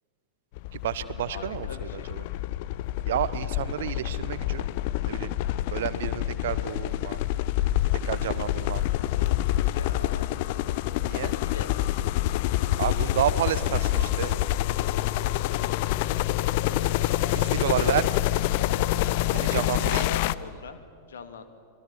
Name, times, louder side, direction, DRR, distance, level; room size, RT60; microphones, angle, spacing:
sound 1, 0.6-20.3, left 15 dB, 50° left, 0.6 m, -27 dB
voice 1, 0.7-2.2 3.1-4.7 5.0-5.4 5.7-7.2 8.0-8.8 11.0-11.3 12.8-14.4 17.3-18.1 19.3-20.1, right 11 dB, 60° right, 15 dB, 1.0 m, -30 dB
voice 2, 1.3-2.1 8.2-8.3 9.1-10.3 11.1-11.8 12.9-13.1 13.5-13.6 19.5-21.5, left 6 dB, 65° left, 9 dB, 2.0 m, -42 dB
26.0 x 23.0 x 7.1 m, 2.2 s
figure-of-eight pair, 90°, 0 cm